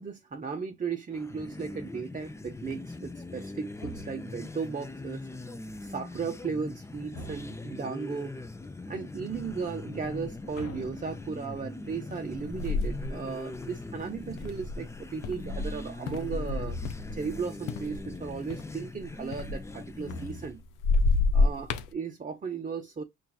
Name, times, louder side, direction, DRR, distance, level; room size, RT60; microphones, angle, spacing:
voice 1, 0.0-5.3 5.8-8.3 8.9-16.8 17.1-20.6 21.3-23.0, right 5 dB, 25° right, 0.7 m, -36 dB
sound 1, 1.1-20.6, left 2 dB, 10° left, 0.5 m, -41 dB
sound 2, 3.8-4.6 7.1-7.9 10.5-11.7 16.6-17.3 20.0-20.9, left 1 dB, 55° left, 0.9 m, -45 dB
sound 3, 9.4-9.5 10.0-10.4 11.0-11.2 12.1-17.4 17.7-20.5 20.8-21.9, left 3 dB, 90° left, 0.6 m, -29 dB
5.6 x 2.5 x 2.3 m
cardioid pair, 90°, 30 cm